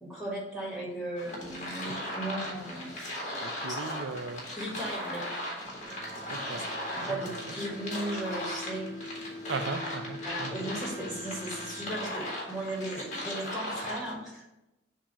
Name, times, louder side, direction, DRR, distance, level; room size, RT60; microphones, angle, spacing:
voice 1, 0.0-2.9 4.6-5.2 6.6-6.7 6.9-8.9 10.2-14.7, right 1 dB, ahead, -5 dB, 2.1 m, -36 dB
sound 1, 1.2-14.1, left 1 dB, 40° left, 1.9 m, -38 dB
voice 2, 3.4-4.5 6.3-6.6 7.0-7.5 9.5-10.7, right 4 dB, 70° right, 9 dB, 0.5 m, -38 dB
sound 2, 5.8-12.0, left 1 dB, 45° right, 1.0 m, -43 dB
7.3 x 2.9 x 5.6 m, 0.94 s
head